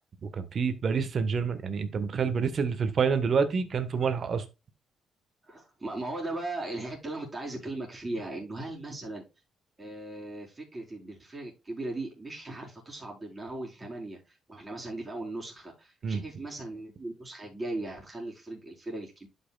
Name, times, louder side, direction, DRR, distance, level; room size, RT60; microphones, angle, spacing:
voice 1, 0.2-4.4 16.0-16.2, right 5 dB, 50° right, 1.4 m, -28 dB
voice 2, 5.4-9.2 9.8-19.3, right 2 dB, 25° right, 4.2 m, -38 dB
11.5 x 5.6 x 2.4 m
cardioid pair, 90°, 0 cm